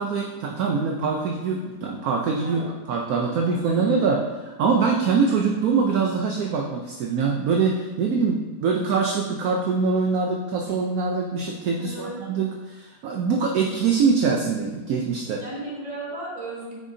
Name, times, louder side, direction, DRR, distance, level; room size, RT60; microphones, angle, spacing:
voice 1, 0.0-2.6 2.9-4.2 4.6-15.4, right 5 dB, 65° right, 1 dB, 1.1 m, -23 dB
voice 2, 3.1-4.0 11.8-12.2 15.4-16.7, right 1 dB, 25° right, -5 dB, 1.9 m, -35 dB
9.1 x 6.3 x 2.7 m, 1.3 s
omnidirectional pair, 1.8 m